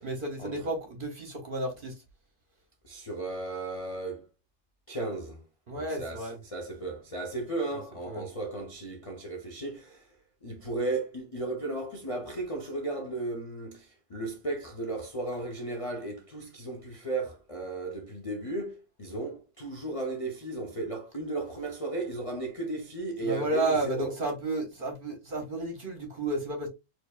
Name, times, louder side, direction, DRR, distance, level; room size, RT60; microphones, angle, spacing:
voice 1, 0.0-2.0 5.7-6.4 7.7-7.8 8.1-8.2 23.2-26.7, right 2 dB, 45° right, 0.9 m, -32 dB
voice 2, 2.8-4.2 4.9-5.4 5.7-10.1 10.4-24.1, right 2 dB, 40° left, 0.5 m, -35 dB
4.5 x 2.6 x 2.3 m
omnidirectional pair, 1.5 m